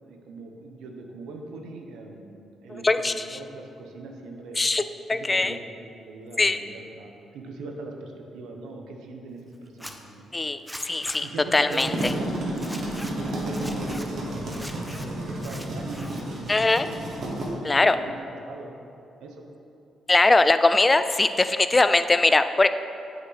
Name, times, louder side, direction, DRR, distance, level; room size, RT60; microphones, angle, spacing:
voice 1, 0.0-2.4 2.6-4.6 5.1-5.6 6.0-10.2 10.6-10.8 11.2-12.3 13.4-18.1 18.4-18.7 19.2-19.4, right 3 dB, 85° right, 2 dB, 0.8 m, -40 dB
voice 2, 2.8-3.4 4.6-4.8 5.1-5.6 6.4-6.6 10.3-10.6 10.8-11.3 11.5-11.9 16.5-16.9 17.6-18.0 20.1-22.7, left 2 dB, 25° left, 11 dB, 0.3 m, -20 dB
Zipper (clothing), 9.7-9.9 10.7-11.2 11.6-12.1 12.6-13.1 13.5-14.1 14.5-15.0 15.4-16.2 16.5-17.1, equal, ahead, 0.7 m, -40 dB
sound 1, 11.7-17.5, right 1 dB, 65° right, 1.5 m, -31 dB
8.0 x 5.3 x 4.0 m, 2.6 s
supercardioid pair, 65°, 0 cm